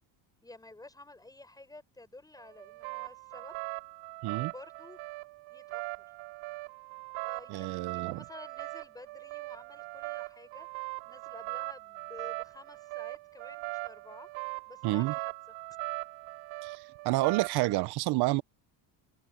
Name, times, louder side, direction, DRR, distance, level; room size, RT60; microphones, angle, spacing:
voice 1, 0.4-3.6 4.4-5.0 5.5-6.0 7.2-10.7 11.0-14.3 14.6-15.3, left 2 dB, 10° left, 6.4 m, -51 dB
sound 1, 2.4-17.7, right 24 dB, 85° right, 4.4 m, -40 dB
voice 2, 7.5-8.2 14.8-15.1 16.6-18.4, right 19 dB, 55° right, 0.8 m, -29 dB
open air
cardioid pair, 150°, 48 cm